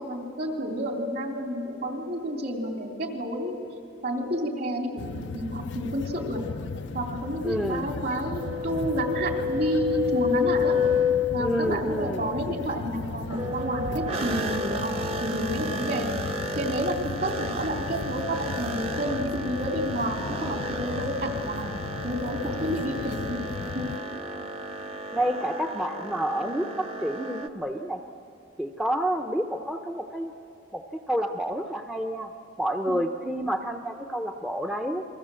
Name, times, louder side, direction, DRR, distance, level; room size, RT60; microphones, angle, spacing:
voice 1, 0.0-3.5 4.0-6.4 6.9-10.8 11.3-14.9 15.2-16.1 16.5-21.7 22.0-23.4 23.7-23.9 32.9-33.0, right 1 dB, 50° right, 2 dB, 3.2 m, -30 dB
sound 1, 5.0-24.0, left 4 dB, 65° left, 0.5 m, -37 dB
voice 2, 7.4-7.9 11.4-12.2 25.1-28.0 28.6-30.3 30.7-32.3 32.6-35.0, equal, 5° right, 4 dB, 0.7 m, -29 dB
sound 2, 8.4-11.7 13.3-27.5, left 3 dB, 30° right, 1.0 m, -31 dB
29.0 x 23.0 x 7.7 m, 2.9 s
head